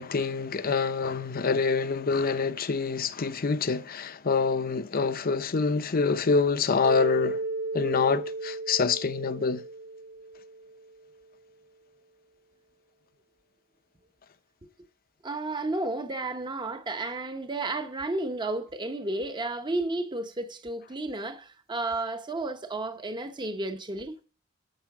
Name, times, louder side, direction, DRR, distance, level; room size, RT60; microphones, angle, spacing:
voice 1, 0.0-7.4 7.7-9.6, left 4 dB, 45° left, 0.6 m, -26 dB
Mallet percussion, 6.8-11.0, right 2 dB, 80° right, 2.4 m, -34 dB
voice 2, 15.2-24.1, right 2 dB, 20° right, 0.8 m, -32 dB
10.5 x 6.8 x 4.8 m
head